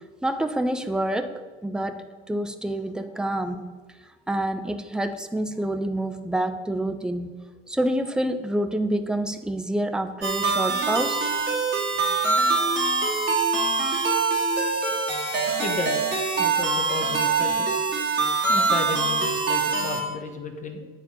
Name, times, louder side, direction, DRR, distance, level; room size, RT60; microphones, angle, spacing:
voice 1, 0.2-3.7 4.3-7.4 7.7-11.3, right 1 dB, ahead, 8 dB, 0.6 m, -27 dB
sound 1, 10.2-20.0, right 4 dB, 35° right, 2.6 m, -24 dB
voice 2, 15.6-16.0 16.4-17.8 18.5-20.9, left 3 dB, 25° left, 5 dB, 1.4 m, -33 dB
9.7 x 4.2 x 6.9 m, 1.4 s
figure-of-eight pair, 75°, 31 cm